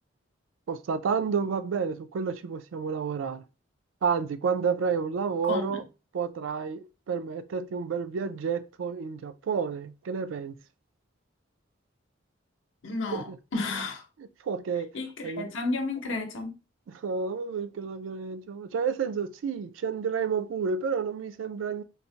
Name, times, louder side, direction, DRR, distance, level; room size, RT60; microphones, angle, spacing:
voice 1, 0.7-3.4 4.0-5.8 6.1-10.6 13.1-13.4 14.4-14.9 15.2-15.5 16.9-21.8, right 6 dB, 85° right, 0.4 m, -30 dB
voice 2, 5.4-5.8 12.8-14.0 14.9-16.6, left 3 dB, 80° left, 0.7 m, -32 dB
4.0 x 2.1 x 2.7 m
head